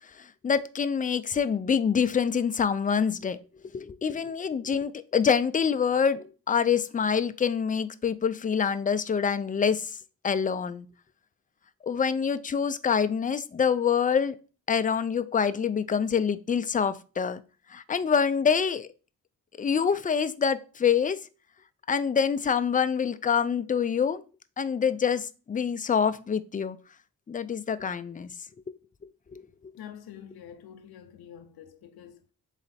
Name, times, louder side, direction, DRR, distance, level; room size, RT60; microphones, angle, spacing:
voice 1, 0.2-3.4 3.6-10.0 10.2-10.9 11.8-14.4 14.7-17.4 17.7-18.9 19.6-21.2 21.9-24.2 24.6-26.8 27.3-28.3 29.3-29.4, left 6 dB, 25° left, 0.3 m, -26 dB
voice 2, 29.8-32.2, left 9 dB, 85° left, 0.6 m, -46 dB
4.0 x 3.3 x 4.0 m
cardioid pair, 65°, 37 cm